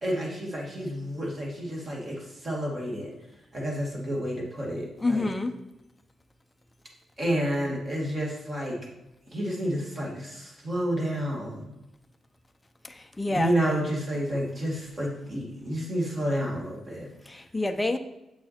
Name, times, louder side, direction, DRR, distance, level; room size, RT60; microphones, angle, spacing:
voice 1, 0.0-3.1 3.5-5.3 7.2-8.8 9.3-11.7 13.3-17.1, equal, 30° right, -2 dB, 2.1 m, -30 dB
voice 2, 5.0-5.5 12.8-13.5 17.3-18.0, left 2 dB, 10° left, 6 dB, 0.6 m, -28 dB
7.8 x 6.2 x 4.3 m, 0.94 s
wide cardioid pair, 145°, 0 cm